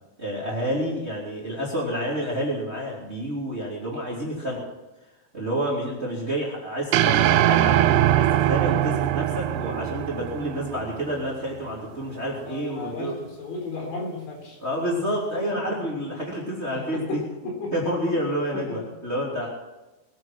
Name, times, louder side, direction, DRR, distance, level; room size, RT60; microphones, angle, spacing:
voice 1, 0.2-4.6 5.3-13.1 13.7-13.9 14.6-17.2 17.7-19.5, equal, 15° right, -4 dB, 2.7 m, -29 dB
sound 1, 6.9-11.3, right 13 dB, 80° right, 2.4 m, -22 dB
voice 2, 12.4-14.6 15.0-16.1 16.7-17.7 18.5-18.8, left 2 dB, 85° left, 0 dB, 6.6 m, -35 dB
21.5 x 9.3 x 6.0 m, 1.1 s
omnidirectional pair, 5.1 m